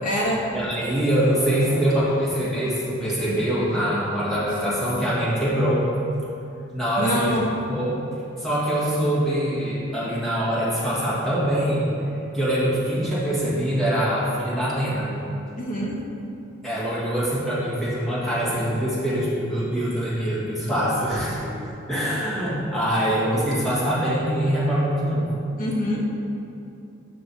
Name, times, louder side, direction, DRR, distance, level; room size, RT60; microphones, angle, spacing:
voice 1, 0.0-0.4 7.0-7.5 15.6-16.0 25.6-26.1, equal, 40° left, -4 dB, 1.3 m, -25 dB
voice 2, 0.5-5.8 6.7-7.4 7.7-8.0 8.4-11.9 12.3-15.1 16.6-21.6 21.9-25.3, equal, ahead, -10 dB, 1.8 m, -24 dB
7.6 x 5.5 x 4.2 m, 2.7 s
head